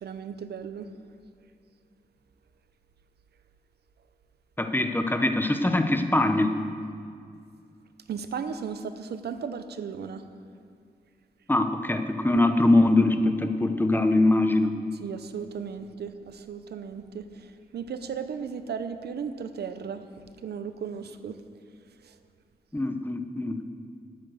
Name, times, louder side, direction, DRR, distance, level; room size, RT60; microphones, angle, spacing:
voice 1, 0.0-0.9 8.1-10.2 15.0-17.5 17.7-20.0 20.4-21.4, right 6 dB, 80° right, 10 dB, 0.7 m, -35 dB
voice 2, 4.6-6.6 11.5-14.8 22.7-23.6, left 2 dB, 10° left, 7 dB, 1.0 m, -23 dB
11.5 x 9.0 x 6.5 m, 2.2 s
cardioid pair, 60°, 17 cm